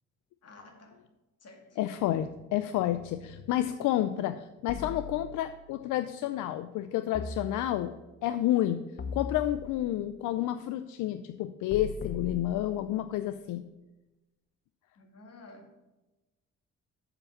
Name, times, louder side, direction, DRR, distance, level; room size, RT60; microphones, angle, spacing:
voice 1, 0.4-0.9 1.4-1.8 15.0-15.9, left 2 dB, 55° left, 2 dB, 2.2 m, -52 dB
voice 2, 1.8-8.0 8.2-8.8 9.1-13.6, left 13 dB, 85° left, 10 dB, 0.5 m, -30 dB
sound 1, 4.7-5.8 7.1-8.1 9.0-10.1 11.7-13.1, left 4 dB, 40° left, 0.7 m, -40 dB
7.7 x 5.0 x 7.3 m, 1.1 s
cardioid pair, 90°, 30 cm